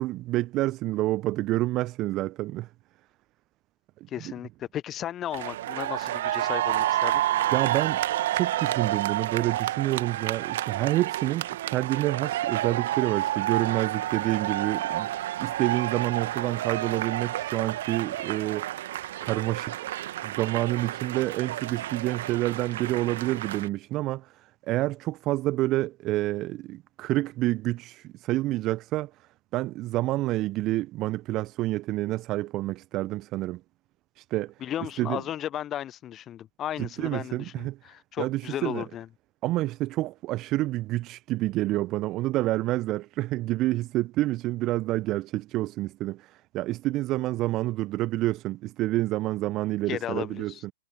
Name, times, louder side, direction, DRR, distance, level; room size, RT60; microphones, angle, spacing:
voice 1, 0.0-2.7 7.5-8.0 8.3-15.1 15.4-18.7 19.2-19.9 20.2-29.1 29.5-33.6 34.2-34.5 35.0-35.2 36.8-37.8 38.2-38.8 39.4-50.7, right 17 dB, 30° right, 0.8 m, -28 dB
voice 2, 4.1-7.2 34.6-39.1 49.9-50.6, left 11 dB, 25° left, 1.0 m, -35 dB
sound 1, 5.3-23.7, right 14 dB, 55° right, 1.5 m, -30 dB
figure-of-eight pair, 105°, 0 cm